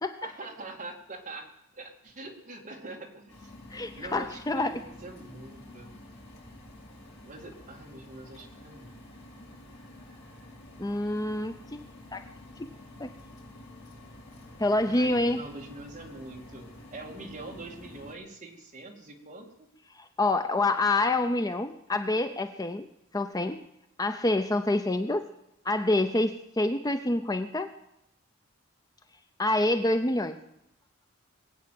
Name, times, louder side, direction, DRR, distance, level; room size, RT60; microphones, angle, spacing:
voice 1, 0.2-3.5 3.9-5.9 7.2-9.0 14.9-19.7, right 2 dB, 35° right, 1 dB, 2.6 m, -44 dB
sound 1, 3.3-18.1, left 1 dB, 50° left, 4.6 m, -49 dB
voice 2, 3.7-4.7 10.8-11.8 12.1-12.2 12.6-12.7 13.0-13.1 14.6-15.4 19.9-22.9 23.1-23.6 24.0-25.2 25.6-27.7 29.4-30.4, left 2 dB, 15° left, 8 dB, 0.6 m, -27 dB
20.5 x 8.6 x 7.7 m, 0.85 s
head